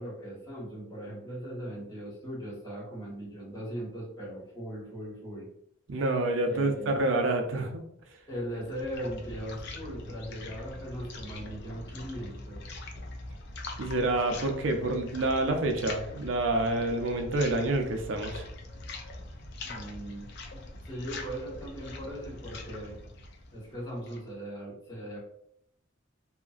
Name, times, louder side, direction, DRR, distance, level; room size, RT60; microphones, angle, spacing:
voice 1, 0.0-5.5 6.4-7.0 8.3-12.6 19.6-20.3 20.5-23.0 23.5-25.2, equal, 20° left, -8 dB, 1.3 m, -39 dB
voice 2, 5.9-7.8 13.8-18.4, right 2 dB, 80° right, 5 dB, 0.5 m, -28 dB
sound 1, 8.3-24.3, left 2 dB, 60° left, 0.4 m, -43 dB
2.8 x 2.5 x 2.4 m, 0.72 s
head